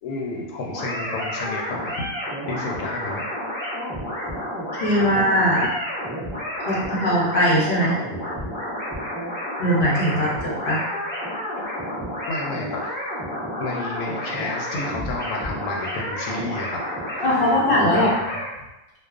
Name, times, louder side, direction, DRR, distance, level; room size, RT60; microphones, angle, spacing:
voice 1, 0.0-2.1 2.5-3.2 4.2-4.3 5.6-5.7 10.1-10.2 11.6-11.7 12.3-12.9 13.6-16.8 17.1-17.7 17.9-18.1, left 3 dB, 85° left, -1 dB, 1.1 m, -31 dB
sound 1, 0.7-18.5, equal, 15° right, 1.0 m, -30 dB
voice 2, 4.8-5.6 6.6-8.0 9.6-10.8 17.2-18.1, equal, 50° left, -6 dB, 0.8 m, -20 dB
2.5 x 2.3 x 2.4 m, 1.0 s
omnidirectional pair, 1.6 m